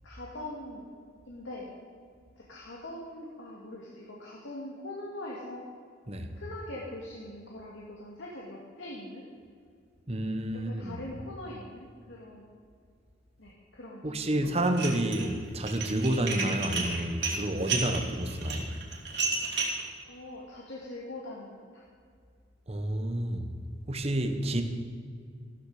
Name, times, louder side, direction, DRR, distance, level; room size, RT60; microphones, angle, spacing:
voice 1, 0.0-0.9 1.3-1.7 2.4-5.7 6.3-9.2 10.5-12.4 13.4-14.6 16.6-16.8 20.1-21.8, left 1 dB, 75° left, -4 dB, 2.2 m, -42 dB
voice 2, 10.1-11.0 14.0-18.7 22.7-23.5 23.9-24.6, right 1 dB, 30° right, 6 dB, 1.1 m, -29 dB
Dishes pots and pans, 14.7-15.3 15.6-19.8, right 4 dB, 60° right, 2.8 m, -32 dB
14.0 x 13.5 x 5.0 m, 2.1 s
head